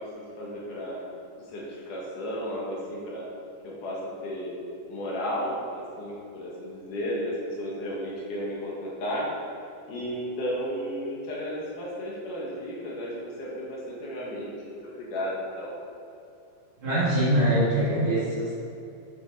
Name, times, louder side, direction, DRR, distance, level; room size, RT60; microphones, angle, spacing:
voice 1, 0.1-1.0 1.5-3.3 3.6-4.5 4.9-9.3 9.9-14.5 14.9-15.7, equal, 70° left, -5 dB, 3.2 m, -33 dB
voice 2, 16.8-18.5, right 1 dB, 45° right, -8 dB, 2.2 m, -23 dB
9.5 x 6.6 x 4.0 m, 2.7 s
omnidirectional pair, 3.8 m